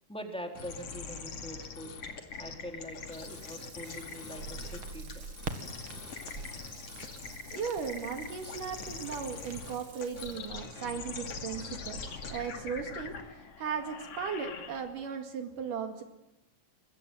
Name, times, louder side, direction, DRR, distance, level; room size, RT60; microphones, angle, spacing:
voice 1, 0.1-5.2 6.0-6.2, equal, ahead, 4 dB, 3.4 m, -44 dB
sound 1, 0.6-15.1, left 5 dB, 45° left, 3.1 m, -43 dB
Water tap faucet / Sink (filling or washing), 2.9-12.1 12.5-12.6, right 3 dB, 30° right, 3.6 m, -53 dB
sound 2, 4.4-12.4, right 4 dB, 45° right, 2.4 m, -46 dB
voice 2, 7.5-13.1 13.6-16.0, right 6 dB, 70° right, 5 dB, 3.7 m, -37 dB
24.0 x 24.0 x 9.2 m, 0.92 s
omnidirectional pair, 3.9 m